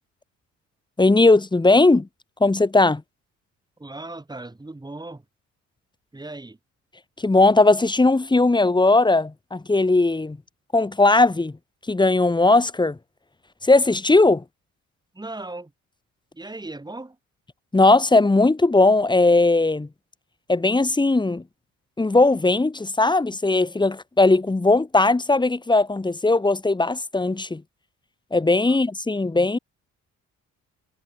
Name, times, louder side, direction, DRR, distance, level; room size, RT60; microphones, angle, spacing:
voice 1, 1.0-2.1 2.4-3.0 7.2-10.4 10.7-11.6 11.9-13.0 13.6-14.4 17.7-19.9 20.5-21.4 22.0-27.6 28.3-29.6, left 2 dB, 15° left, 1.5 m, -18 dB
voice 2, 3.8-5.2 6.1-6.6 15.1-15.7 16.3-17.2 28.7-28.8, right 2 dB, 15° right, 4.5 m, -37 dB
cardioid pair, 90°, 30 cm